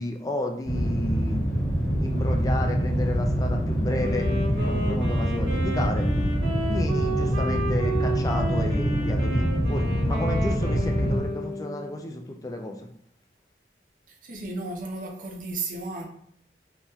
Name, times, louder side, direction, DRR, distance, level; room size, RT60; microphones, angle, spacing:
voice 1, 0.0-1.4 2.0-6.1 6.7-12.9, left 1 dB, 20° left, 3 dB, 0.3 m, -32 dB
sound 1, 0.6-11.2, equal, 40° left, 1.1 m, -25 dB
Wind instrument woodwind instrument, 4.0-12.0, right 1 dB, 90° right, 1.2 m, -32 dB
voice 2, 14.1-16.0, right 3 dB, 50° right, 2 dB, 0.5 m, -34 dB
2.8 x 2.1 x 3.5 m, 0.67 s
head